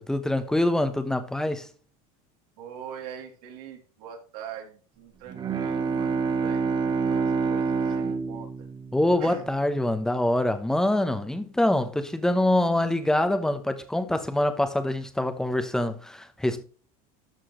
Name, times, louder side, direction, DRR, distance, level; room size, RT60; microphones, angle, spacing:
voice 1, 0.0-1.7 8.9-16.6, left 1 dB, 5° left, 0.9 m, -25 dB
voice 2, 2.6-8.7 9.2-9.5, right 8 dB, 75° right, 3.1 m, -43 dB
Bowed string instrument, 5.3-9.8, right 5 dB, 25° right, 1.1 m, -27 dB
13.0 x 6.1 x 3.2 m
supercardioid pair, 145°, 19 cm